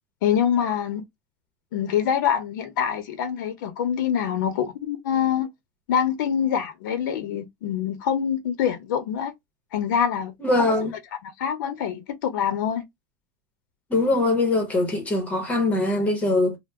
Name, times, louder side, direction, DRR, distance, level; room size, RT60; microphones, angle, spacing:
voice 1, 0.2-1.0 1.7-5.5 5.9-9.3 9.7-10.9 11.2-12.8, left 8 dB, 85° left, 0.7 m, -25 dB
voice 2, 10.4-10.9 13.9-16.6, left 2 dB, 15° left, 0.8 m, -22 dB
2.8 x 2.0 x 3.4 m
supercardioid pair, 165°, 10 cm